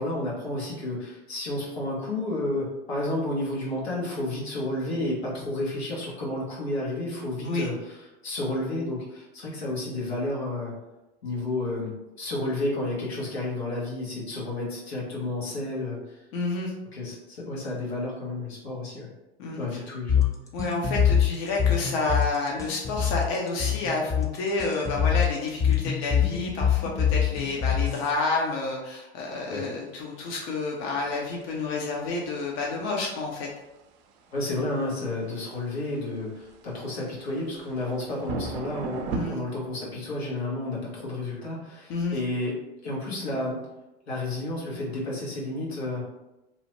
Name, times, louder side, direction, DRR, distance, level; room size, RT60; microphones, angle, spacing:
voice 1, 0.0-10.7 11.2-11.9 12.2-16.2 16.9-19.1 19.6-20.3 29.5-29.7 34.3-43.6 44.1-46.0, left 2 dB, 90° left, -5 dB, 1.1 m, -31 dB
voice 2, 16.3-16.7 19.4-19.8 20.5-33.5 39.1-39.4 41.9-42.2, left 3 dB, 55° left, -1 dB, 0.7 m, -29 dB
sound 1, 20.1-28.1, left 8 dB, 10° left, 0.3 m, -24 dB
sound 2, 29.5-39.3, right 5 dB, 50° right, 0.5 m, -40 dB
2.7 x 2.1 x 3.0 m, 0.98 s
hypercardioid pair, 85°, 30 cm